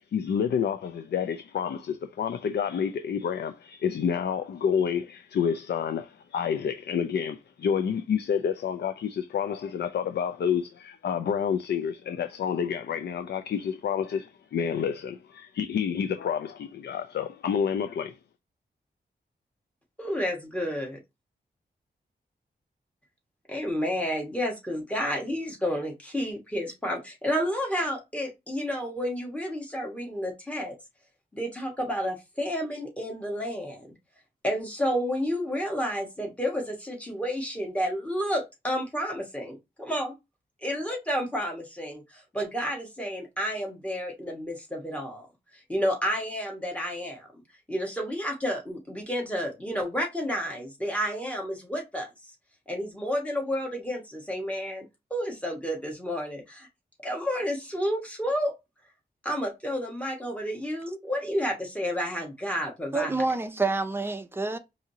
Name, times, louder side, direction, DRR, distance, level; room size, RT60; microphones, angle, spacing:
voice 1, 0.0-18.2, left 7 dB, 75° left, 0.4 m, -29 dB
voice 2, 20.0-20.9 23.5-30.7 31.3-33.9 34.4-40.1 40.6-45.3 45.7-47.3 47.7-52.1 52.7-56.7 57.0-58.5 59.2-63.2, equal, 5° left, 1.3 m, -30 dB
voice 3, 62.9-64.6, right 3 dB, 15° right, 0.5 m, -27 dB
4.8 x 2.7 x 2.7 m
wide cardioid pair, 160°, 17 cm